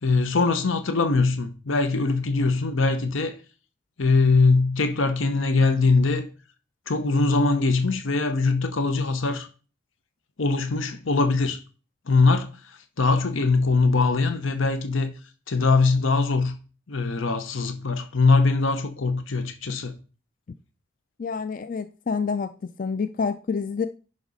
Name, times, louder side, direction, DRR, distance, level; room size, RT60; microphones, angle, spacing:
voice 1, 0.0-3.4 4.0-6.3 6.9-9.5 10.4-11.6 12.1-12.5 13.0-15.1 15.5-16.6 16.9-19.9, left 3 dB, 75° left, 0.9 m, -22 dB
voice 2, 21.2-22.5 22.8-23.9, left 5 dB, 40° left, 0.4 m, -27 dB
11.0 x 5.1 x 4.0 m
head